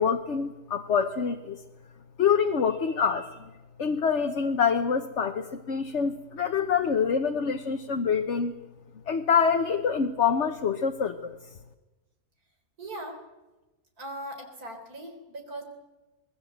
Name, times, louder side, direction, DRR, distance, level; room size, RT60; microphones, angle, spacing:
voice 1, 0.0-1.6 2.2-3.4 3.8-8.5 9.1-11.4, left 6 dB, 55° left, 4 dB, 1.3 m, -26 dB
voice 2, 12.8-13.2 14.0-15.6, right 1 dB, 80° right, 4 dB, 4.6 m, -39 dB
25.5 x 20.5 x 8.0 m, 1.1 s
omnidirectional pair, 1.6 m